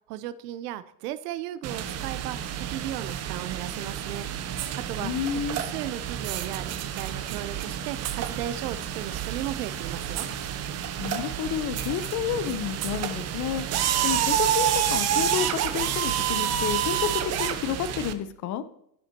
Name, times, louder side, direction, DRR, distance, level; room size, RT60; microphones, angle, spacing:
voice 1, 0.1-5.1 5.5-10.3, right 12 dB, 70° right, 14 dB, 0.7 m, -36 dB
sound 1, 1.6-18.1, right 10 dB, 30° right, 0.8 m, -29 dB
voice 2, 5.0-5.6 11.0-13.6 14.0-18.6, left 9 dB, 35° left, 13 dB, 0.8 m, -30 dB
10.5 x 9.9 x 2.9 m, 0.75 s
supercardioid pair, 130°, 49 cm